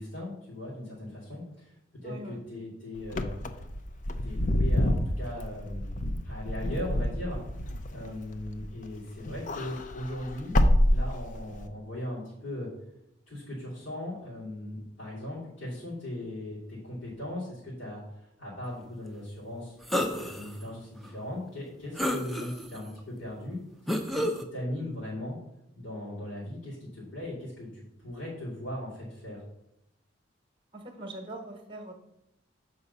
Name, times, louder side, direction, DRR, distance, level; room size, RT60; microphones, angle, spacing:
voice 1, 0.0-1.7 2.0-3.4 4.1-7.4 7.9-10.6 10.9-12.7 13.3-19.8 20.1-23.6 24.1-25.4 25.7-29.4, left 1 dB, 75° left, -10 dB, 3.0 m, -38 dB
voice 2, 2.0-2.4 8.0-8.2 30.7-31.9, right 1 dB, 25° right, 5 dB, 1.1 m, -42 dB
Wind / Car, 3.0-8.9 9.2-11.6, left 1 dB, 40° left, 0.5 m, -27 dB
sound 1, 19.9-20.5 21.0-21.1 22.0-22.8 23.9-24.4, equal, ahead, 0.6 m, -29 dB
6.9 x 4.9 x 5.4 m, 0.84 s
head